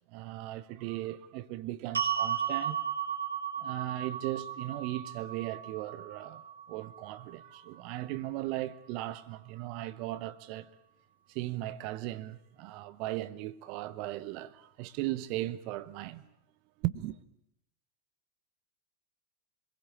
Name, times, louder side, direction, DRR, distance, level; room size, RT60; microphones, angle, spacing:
voice 1, 0.1-2.8 3.6-6.4 6.7-10.7 11.3-16.2 16.8-17.2, right 16 dB, 45° right, 1.0 m, -37 dB
sound 1, 1.9-8.2, right 8 dB, 75° right, 1.1 m, -35 dB
26.0 x 21.5 x 8.6 m
figure-of-eight pair, 90°, 0 cm